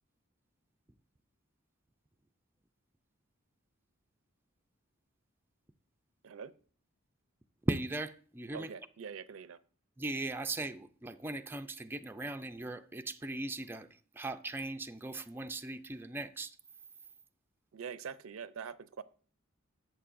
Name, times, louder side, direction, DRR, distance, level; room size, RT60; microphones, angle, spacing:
voice 1, 7.7-8.7 10.0-16.6, right 2 dB, 10° right, 0.3 m, -38 dB
voice 2, 8.5-9.6 17.7-19.0, right 6 dB, 80° right, 0.5 m, -44 dB
11.0 x 7.6 x 2.5 m
head